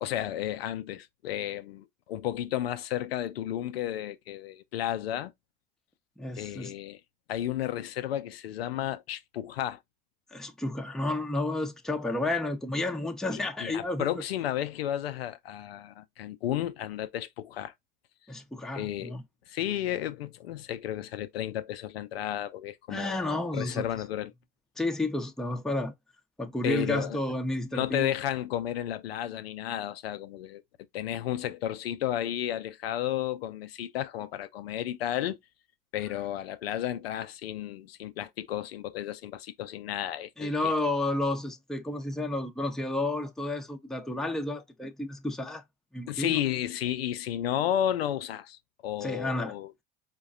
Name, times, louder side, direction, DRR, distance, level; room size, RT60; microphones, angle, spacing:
voice 1, 0.0-5.3 6.4-7.0 7.3-9.8 13.3-17.7 18.7-19.1 19.5-23.3 23.5-24.3 26.6-27.2 27.7-30.6 30.9-35.4 35.9-40.7 46.1-49.7, left 11 dB, 85° left, 0.5 m, -32 dB
voice 2, 6.2-6.7 10.3-14.2 18.3-19.2 22.9-23.9 24.8-25.9 26.4-28.1 40.4-45.6 45.9-46.4 49.0-49.5, left 2 dB, ahead, 0.6 m, -31 dB
4.5 x 2.2 x 2.3 m
hypercardioid pair, 65°, 30 cm